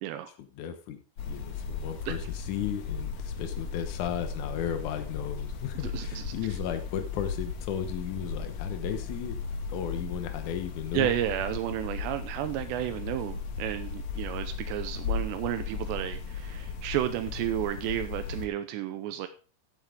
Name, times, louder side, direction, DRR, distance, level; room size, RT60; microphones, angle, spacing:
voice 1, 0.4-9.4 9.7-11.1, left 9 dB, 80° left, 8 dB, 1.7 m, -35 dB
sound 1, 1.2-18.5, left 5 dB, 65° left, 1.9 m, -36 dB
voice 2, 5.8-6.3 10.9-19.3, right 12 dB, 85° right, 9 dB, 2.9 m, -32 dB
14.0 x 8.0 x 3.7 m, 0.37 s
omnidirectional pair, 5.0 m